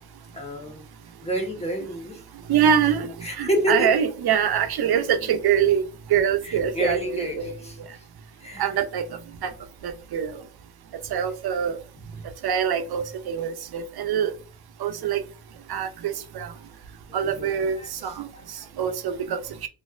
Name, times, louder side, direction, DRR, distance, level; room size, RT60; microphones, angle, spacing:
voice 1, 0.3-0.8 1.2-2.2 3.2-3.9 6.4-7.8 8.4-8.7 11.1-11.2 17.2-18.7, equal, 15° left, 1.1 m, -29 dB
voice 2, 2.5-3.1 3.4-5.8 6.1-7.5 8.6-9.0 9.4-9.5 9.8-10.3 11.1-11.7 12.4-14.3 14.8-15.2 15.7-16.5 17.1-18.3 18.8-19.4, right 8 dB, 85° right, 0.5 m, -24 dB
4.1 x 2.5 x 2.4 m
wide cardioid pair, 95°, 37 cm